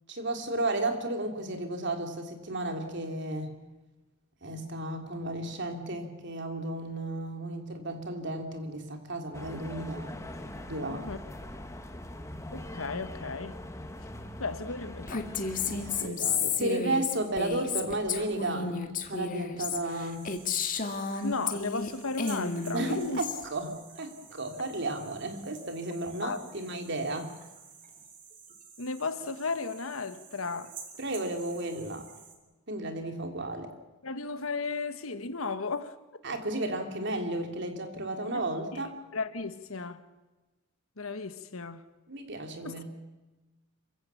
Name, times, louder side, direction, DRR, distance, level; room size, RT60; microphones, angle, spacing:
voice 1, 0.1-3.5 4.4-10.2 10.7-11.1 15.6-20.4 22.7-27.3 31.0-32.0 32.7-33.7 36.2-39.0 42.1-42.8, right 2 dB, 60° right, 3.1 m, -33 dB
sound 1, 9.3-16.1, left 1 dB, 15° left, 1.5 m, -42 dB
voice 2, 12.5-13.6 14.4-15.3 21.2-23.2 26.2-26.4 28.8-30.7 34.0-36.0 38.3-38.4 38.7-38.8 39.1-40.0 41.0-41.9 42.6-42.8, left 4 dB, 85° left, 1.4 m, -35 dB
Female speech woman speaking, 15.1-21.9 22.2-23.5, left 5 dB, 40° left, 1.9 m, -32 dB
sound 2, 19.9-32.4, right 6 dB, 40° right, 3.5 m, -51 dB
27.0 x 16.0 x 7.1 m
head